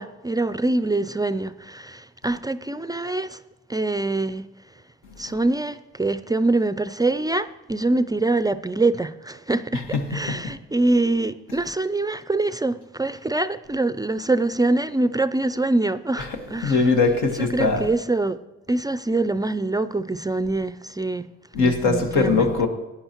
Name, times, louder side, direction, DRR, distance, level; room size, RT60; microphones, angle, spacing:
voice 1, 0.0-3.4 3.7-4.5 5.2-9.8 10.1-16.9 17.3-18.4 18.7-21.3 21.6-22.6, right 2 dB, 15° right, 0.3 m, -24 dB
voice 2, 16.2-17.8 21.5-22.7, left 4 dB, 90° left, 1.5 m, -21 dB
15.5 x 10.0 x 3.0 m
cardioid pair, 90°, 30 cm